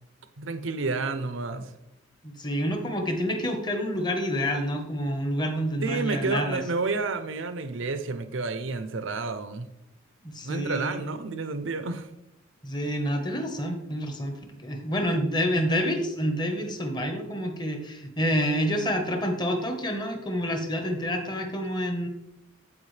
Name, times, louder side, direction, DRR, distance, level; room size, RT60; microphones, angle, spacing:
voice 1, 0.4-1.7 5.8-9.7 10.4-12.1, right 3 dB, 65° right, 9 dB, 0.7 m, -30 dB
voice 2, 2.2-6.6 10.2-11.0 12.6-22.1, equal, 20° left, 4 dB, 1.1 m, -28 dB
14.5 x 4.8 x 3.3 m, 0.86 s
head